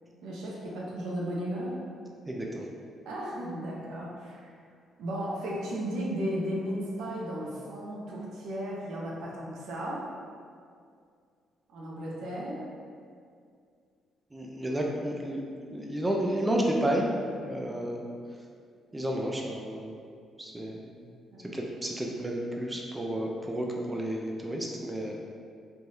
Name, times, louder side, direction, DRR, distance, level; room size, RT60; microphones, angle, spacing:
voice 1, 0.2-1.8 3.0-4.5 5.0-10.1 11.7-12.7 21.3-21.5 25.1-25.2, equal, 75° right, -3 dB, 0.5 m, -35 dB
voice 2, 2.3-2.7 14.3-15.4 15.7-17.1 17.4-18.0 18.9-19.9 20.4-21.0 21.5-25.1, right 1 dB, 15° right, -1 dB, 0.4 m, -31 dB
3.2 x 2.2 x 2.7 m, 2.2 s
supercardioid pair, 60°, 0 cm